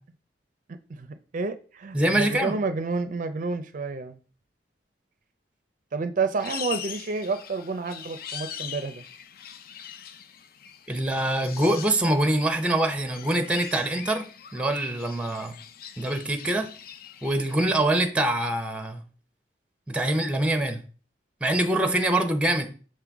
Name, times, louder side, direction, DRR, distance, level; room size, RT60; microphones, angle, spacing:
voice 1, 0.9-4.2 5.9-9.0, right 4 dB, 45° right, 0.4 m, -30 dB
voice 2, 1.9-2.6 10.9-14.2 14.5-15.5 16.0-16.7 17.2-19.0 19.9-20.8 21.4-22.7, right 1 dB, 5° right, 0.7 m, -24 dB
sound 1, 6.4-17.6, left 9 dB, 55° left, 0.5 m, -41 dB
6.4 x 3.8 x 4.5 m
head